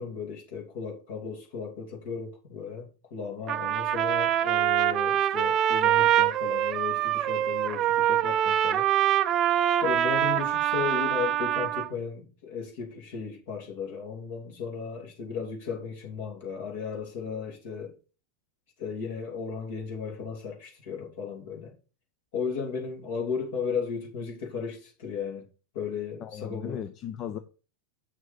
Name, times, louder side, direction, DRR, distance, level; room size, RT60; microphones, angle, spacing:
voice 1, 0.0-8.9 9.8-18.0 18.8-21.7 22.3-25.5 25.7-26.8, left 6 dB, 50° left, 2.8 m, -35 dB
Trumpet, 3.5-11.9, right 11 dB, 30° right, 0.5 m, -24 dB
voice 2, 26.2-27.4, left 9 dB, 35° left, 0.7 m, -36 dB
8.0 x 6.3 x 5.4 m
figure-of-eight pair, 90°, 0 cm